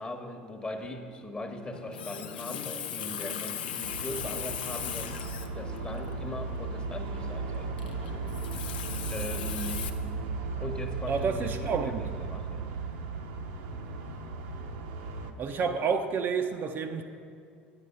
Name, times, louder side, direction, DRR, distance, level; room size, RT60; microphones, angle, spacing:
voice 1, 0.0-8.2 9.1-10.0 10.6-12.7, left 1 dB, 20° left, 5 dB, 1.1 m, -40 dB
Water tap faucet, 1.7-9.9, left 9 dB, 70° left, 0.6 m, -38 dB
sound 1, 3.8-15.3, right 4 dB, 65° right, 0.8 m, -36 dB
voice 2, 11.1-12.0 15.4-17.0, right 5 dB, 35° right, 5 dB, 0.6 m, -29 dB
9.7 x 8.2 x 5.3 m, 2.3 s
figure-of-eight pair, 75°, 6 cm